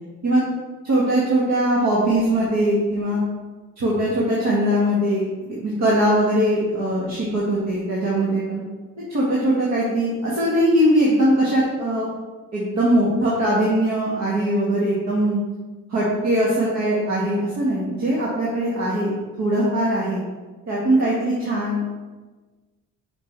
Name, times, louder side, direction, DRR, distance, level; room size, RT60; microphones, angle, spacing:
voice 1, 0.8-3.2 3.8-8.6 9.1-12.1 12.5-15.4 15.9-20.2 20.7-21.8, right 1 dB, 60° right, -6 dB, 1.7 m, -21 dB
6.0 x 4.8 x 4.6 m, 1.3 s
cardioid pair, 90°, 30 cm